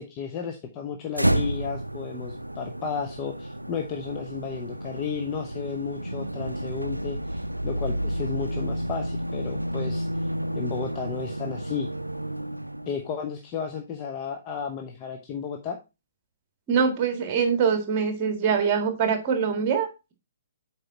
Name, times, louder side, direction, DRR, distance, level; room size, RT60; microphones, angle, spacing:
voice 1, 0.0-10.1 10.5-11.9 12.9-15.8, left 6 dB, 25° left, 3 dB, 0.9 m, -33 dB
sound 1, 1.1-13.1, right 1 dB, 85° right, 0.4 m, -31 dB
voice 2, 16.7-20.1, right 6 dB, 30° right, 6 dB, 1.7 m, -24 dB
7.9 x 4.7 x 4.2 m, 0.27 s
figure-of-eight pair, 125°, 0 cm